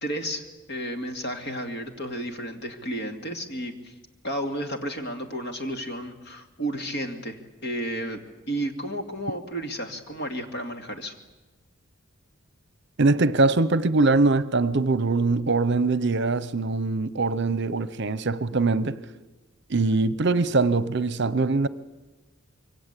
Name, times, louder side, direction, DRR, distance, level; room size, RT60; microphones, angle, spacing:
voice 1, 0.0-3.9 4.2-11.1, right 1 dB, 55° left, 2.5 m, -32 dB
voice 2, 13.0-19.0 19.7-21.7, right 3 dB, 55° right, 0.8 m, -22 dB
26.5 x 23.5 x 8.4 m
head